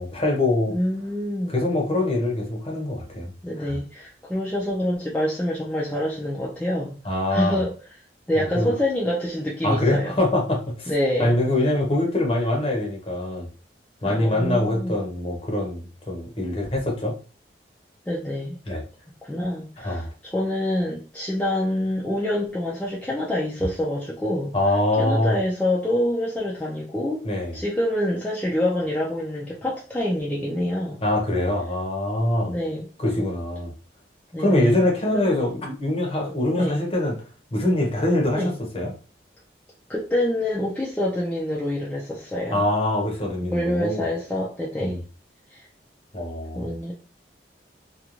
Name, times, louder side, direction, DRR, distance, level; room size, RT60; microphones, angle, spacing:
voice 1, 0.0-0.8 1.5-3.3 3.6-3.8 7.0-7.6 8.3-8.7 9.6-10.9 11.2-13.5 14.0-17.1 18.7-18.8 19.8-20.1 24.5-25.4 27.2-27.6 31.0-32.5 33.0-33.7 34.4-37.2 37.5-38.9 42.5-44.0 44.8-45.0 46.1-46.7, left 1 dB, 35° left, 0.7 m, -24 dB
voice 2, 0.7-1.6 3.4-7.0 7.3-7.8 8.3-10.2 10.9-11.3 14.0-15.1 18.1-18.6 19.2-24.5 25.0-27.2 27.5-31.0 32.5-32.8 34.3-34.8 35.1-35.4 36.6-36.8 38.3-38.5 39.9-42.6 43.4-45.0 45.5-45.6 46.5-46.9, left 1 dB, 10° left, 0.4 m, -26 dB
2.5 x 2.2 x 3.0 m
head